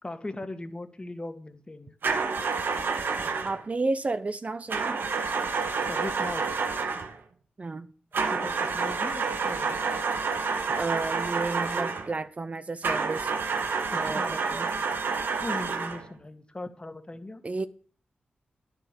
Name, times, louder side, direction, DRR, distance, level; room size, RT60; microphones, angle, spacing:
voice 1, 0.0-1.9 5.9-6.4 8.3-9.8 13.9-14.3 15.4-17.4, left 2 dB, 30° left, 1.8 m, -38 dB
sound 1, 2.0-3.6 4.7-7.2 8.1-12.1 12.8-16.1, right 4 dB, 75° right, 1.2 m, -29 dB
voice 2, 3.4-5.0 7.6-7.9 10.7-13.3 14.0-14.7 17.4-17.7, right 3 dB, 40° right, 0.7 m, -32 dB
10.5 x 7.5 x 6.9 m
cardioid pair, 50°, 3 cm